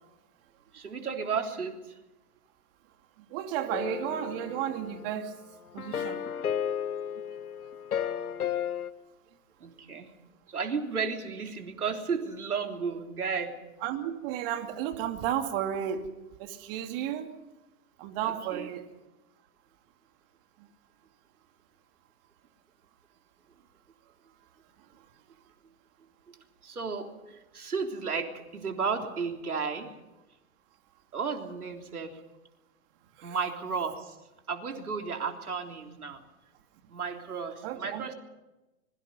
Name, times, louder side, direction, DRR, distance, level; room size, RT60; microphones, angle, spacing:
voice 1, 0.7-2.0 9.6-10.1 10.5-13.6 18.2-18.7 26.6-29.9 31.1-32.2 33.2-34.2 34.5-36.2 36.9-38.1, right 5 dB, 90° right, 3 dB, 3.6 m, -33 dB
voice 2, 3.3-5.3 5.7-6.2 13.8-16.1 16.4-17.3 18.0-18.8 33.2-33.4 37.6-38.1, right 10 dB, 40° right, 5 dB, 2.6 m, -33 dB
sound 1, 3.7-5.3 5.8-8.9, left 8 dB, 85° left, 1.4 m, -33 dB
26.0 x 22.5 x 5.4 m, 1.0 s
hypercardioid pair, 125°, 43 cm